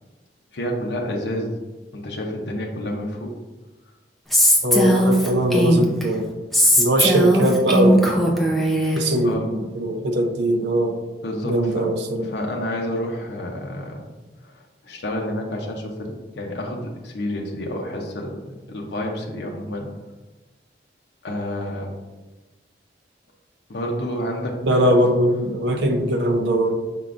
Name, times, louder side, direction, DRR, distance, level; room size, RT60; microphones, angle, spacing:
voice 1, 0.5-1.5 1.9-3.3 6.6-6.8 9.2-9.5 11.2-11.9 12.2-14.0 14.4-19.9 21.2-22.0 23.7-24.9, left 1 dB, 75° left, 0 dB, 0.6 m, -29 dB
Female speech woman speaking, 4.3-6.0 6.5-9.0, equal, ahead, 0.5 m, -18 dB
voice 2, 4.6-6.3 6.8-8.3 8.9-11.0 11.4-12.3 24.6-26.7, right 1 dB, 80° right, 4 dB, 0.6 m, -21 dB
5.6 x 3.7 x 2.5 m, 1.2 s
head